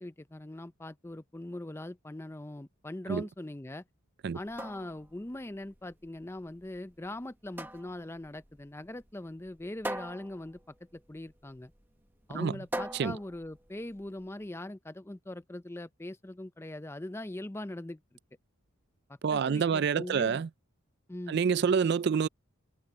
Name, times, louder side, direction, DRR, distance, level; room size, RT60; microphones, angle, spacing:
voice 1, 0.0-3.8 4.3-10.6 10.9-11.7 12.3-18.0 19.3-20.4 21.1-21.4, left 1 dB, 10° left, 0.5 m, -41 dB
sound 1, 4.3-14.3, right 1 dB, 10° right, 1.0 m, -43 dB
voice 2, 19.2-20.5 21.3-22.3, right 6 dB, 50° right, 0.3 m, -27 dB
head